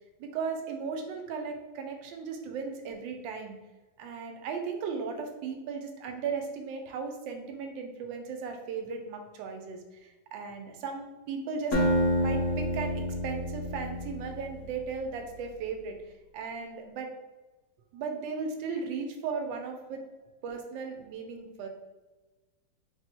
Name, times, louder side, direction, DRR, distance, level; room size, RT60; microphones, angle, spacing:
voice 1, 0.2-3.6 4.0-11.8 12.1-16.0 16.3-17.1 17.9-20.0 20.4-21.7, right 5 dB, 85° right, 5 dB, 1.3 m, -36 dB
Acoustic guitar, 11.7-14.7, equal, 60° left, 1.1 m, -28 dB
4.0 x 2.1 x 4.4 m, 1.2 s
omnidirectional pair, 2.0 m